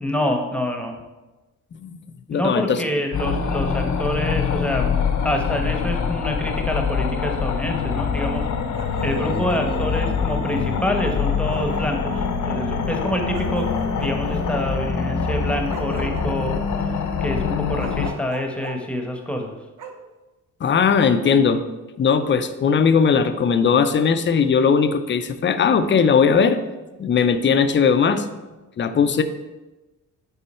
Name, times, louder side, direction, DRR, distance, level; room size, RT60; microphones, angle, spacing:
voice 1, 0.0-0.9 2.3-4.9 5.2-8.5 9.0-13.7 14.0-16.6 16.9-19.5, equal, 5° left, 3 dB, 1.0 m, -26 dB
voice 2, 2.3-2.8 20.6-21.6 22.0-26.6 27.0-28.2 28.8-29.2, left 6 dB, 35° left, 10 dB, 0.5 m, -18 dB
sound 1, 3.1-18.1, left 6 dB, 60° left, 0.8 m, -24 dB
Bark, 8.7-10.1 11.1-11.2 11.5-12.3 13.3-14.4 15.7-16.8 17.8-18.8 19.8-19.9 21.0-21.1, right 4 dB, 65° right, 1.0 m, -36 dB
9.3 x 4.0 x 4.3 m, 1.1 s
cardioid pair, 115°, 33 cm